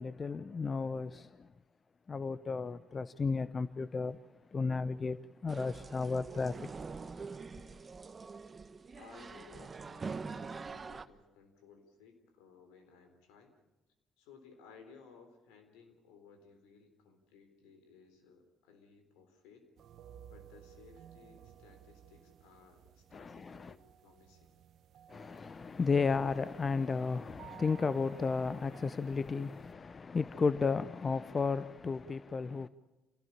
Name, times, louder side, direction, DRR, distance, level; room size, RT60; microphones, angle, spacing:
voice 1, 0.0-1.5 2.1-4.2 4.5-6.7 7.5-7.7 23.1-23.7 25.1-32.7, left 4 dB, 40° left, 0.7 m, -33 dB
sound 1, 5.5-11.1, right 4 dB, 35° right, 1.2 m, -44 dB
voice 2, 8.9-13.5 14.2-19.7 20.3-24.6, left 5 dB, 80° left, 3.7 m, -59 dB
sound 2, 19.8-29.7, right 10 dB, 65° right, 1.1 m, -57 dB
27.5 x 17.5 x 8.7 m
hypercardioid pair, 55°, 0 cm